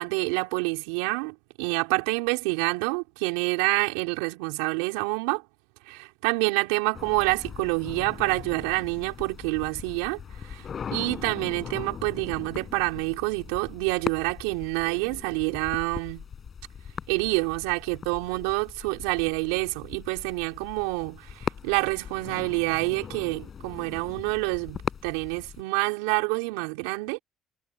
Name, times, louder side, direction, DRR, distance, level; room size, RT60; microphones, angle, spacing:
voice 1, 0.0-5.4 5.8-16.2 17.1-27.2, right 27 dB, 85° right, 4.8 m, -27 dB
sound 1, 6.9-25.6, left 7 dB, 45° left, 5.1 m, -39 dB
hypercardioid pair, 65°, 0 cm